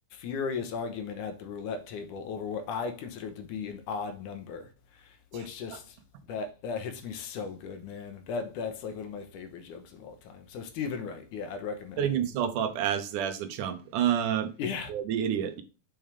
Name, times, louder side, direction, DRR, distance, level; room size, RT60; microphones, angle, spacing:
voice 1, 0.2-4.7 5.3-5.8 6.3-12.0 14.6-14.9, left 5 dB, 75° left, 2.5 m, -36 dB
voice 2, 5.3-5.8 12.0-14.5 14.9-15.6, right 9 dB, 75° right, 2.4 m, -29 dB
7.6 x 5.5 x 3.4 m
omnidirectional pair, 3.8 m